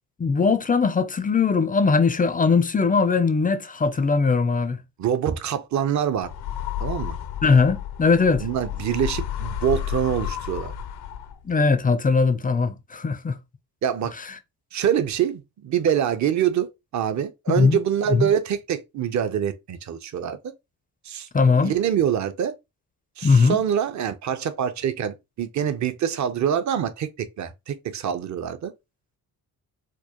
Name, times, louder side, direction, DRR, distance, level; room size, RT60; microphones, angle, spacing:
voice 1, 0.2-4.8 7.4-8.5 11.4-13.4 17.6-17.8 18.1-18.3 21.3-21.7 23.2-23.6, left 4 dB, 20° left, 0.4 m, -20 dB
voice 2, 5.0-6.3 6.8-7.2 8.4-10.7 13.8-14.1 14.7-20.4 21.0-22.5 23.2-28.7, right 9 dB, 45° right, 0.6 m, -25 dB
sound 1, 6.2-11.5, left 10 dB, 75° left, 0.6 m, -31 dB
4.4 x 2.2 x 2.9 m
cardioid pair, 85°, 39 cm